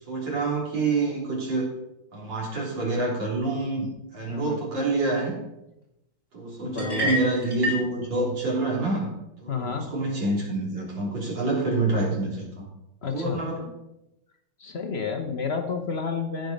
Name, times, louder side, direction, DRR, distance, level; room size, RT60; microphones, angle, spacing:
voice 1, 0.1-1.7 2.1-5.3 6.3-9.1 9.4-12.7 13.1-13.7, right 2 dB, 65° right, -3 dB, 3.8 m, -27 dB
voice 2, 4.3-4.6 6.7-7.2 9.5-9.9 13.0-13.4 14.6-16.5, left 5 dB, 50° left, 6 dB, 0.8 m, -30 dB
sound 1, 6.8-7.9, equal, 10° right, 1.8 m, -28 dB
15.0 x 5.2 x 5.2 m, 0.91 s
omnidirectional pair, 2.2 m